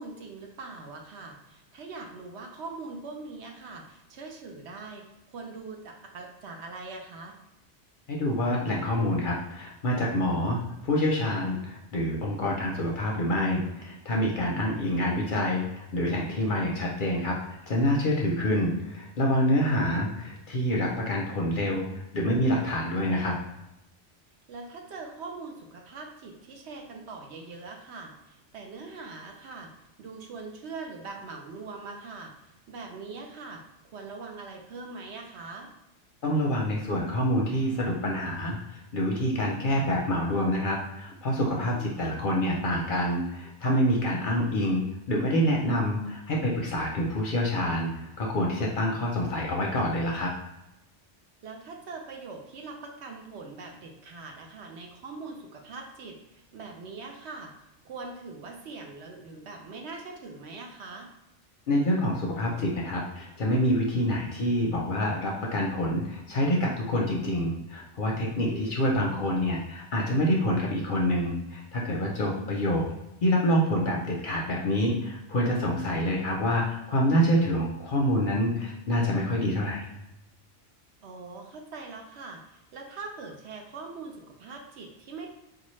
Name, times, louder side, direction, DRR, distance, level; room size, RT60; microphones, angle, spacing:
voice 1, 0.0-7.3 14.5-14.8 19.6-20.0 24.5-29.7 30.0-32.3 32.7-33.6 33.9-35.7 41.6-42.0 44.2-44.4 51.4-57.5 57.8-61.1 68.4-68.8 72.2-72.6 81.0-85.3, right 3 dB, 70° right, 2 dB, 0.9 m, -42 dB
voice 2, 8.1-21.9 22.1-23.3 36.2-50.3 61.7-72.8 73.2-79.9, equal, 55° left, -2 dB, 0.6 m, -27 dB
4.2 x 2.3 x 3.1 m, 0.89 s
omnidirectional pair, 1.2 m